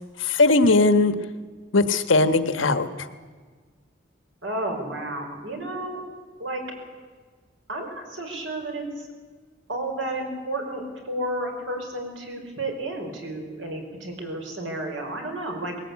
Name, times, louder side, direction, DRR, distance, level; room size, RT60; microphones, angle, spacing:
voice 1, 0.2-1.1 1.7-3.1, left 3 dB, 85° left, 10 dB, 1.3 m, -19 dB
voice 2, 4.4-6.0 6.4-6.6 7.7-8.8 9.7-15.7, right 1 dB, 75° right, 2 dB, 5.1 m, -32 dB
20.5 x 18.0 x 8.5 m, 1.5 s
head